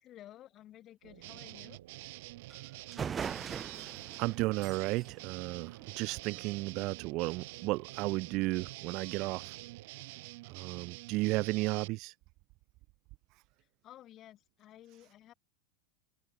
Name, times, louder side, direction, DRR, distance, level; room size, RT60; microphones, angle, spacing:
voice 1, 0.0-1.8 13.8-15.3, left 13 dB, 35° left, 4.9 m, -54 dB
sound 1, 1.0-9.9, right 14 dB, 85° right, 4.1 m, -56 dB
sound 2, 1.2-11.9, right 22 dB, 65° right, 3.9 m, -47 dB
sound 3, 2.5-2.6 2.9-6.4, right 7 dB, 20° right, 1.3 m, -41 dB
voice 2, 4.2-9.5 10.5-12.1, right 22 dB, 50° right, 0.4 m, -33 dB
open air
supercardioid pair, 140°, 0 cm